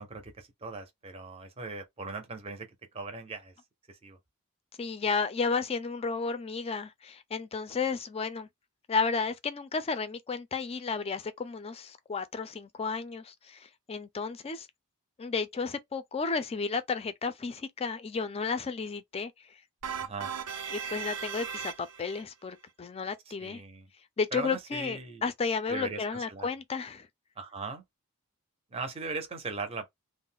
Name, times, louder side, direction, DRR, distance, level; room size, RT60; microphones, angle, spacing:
voice 1, 0.0-2.7 2.9-3.5 3.9-4.2 20.0-20.3 23.4-23.9 24.3-25.2 25.7-26.5 27.4-27.8 28.7-29.9, right 4 dB, 25° right, 0.6 m, -39 dB
voice 2, 4.8-8.5 8.9-14.7 15.2-19.3 20.7-23.6 24.2-27.1, left 5 dB, 25° left, 0.4 m, -32 dB
sound 1, 19.8-22.2, right 7 dB, 80° right, 0.6 m, -37 dB
2.3 x 2.0 x 3.6 m
head